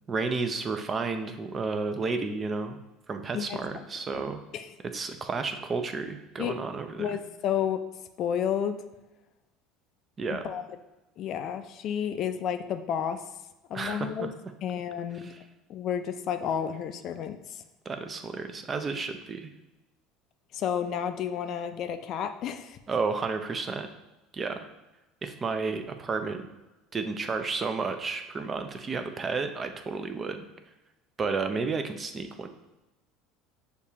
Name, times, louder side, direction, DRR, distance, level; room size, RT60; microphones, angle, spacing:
voice 1, 0.1-2.8 3.1-4.4 4.9-7.2 10.2-10.4 13.7-14.3 15.2-15.4 17.9-19.5 22.9-23.9 24.3-24.7 25.2-26.5 26.9-30.4 31.2-32.5, right 4 dB, 30° right, 7 dB, 0.4 m, -32 dB
voice 2, 3.3-3.8 4.5-4.7 6.4-6.5 7.0-7.8 8.2-8.8 10.3-10.6 11.2-13.2 13.7-14.3 14.6-15.3 15.7-17.6 20.5-22.8, left 8 dB, 50° left, 8 dB, 0.3 m, -31 dB
6.5 x 2.3 x 2.8 m, 1.0 s
supercardioid pair, 105°, 0 cm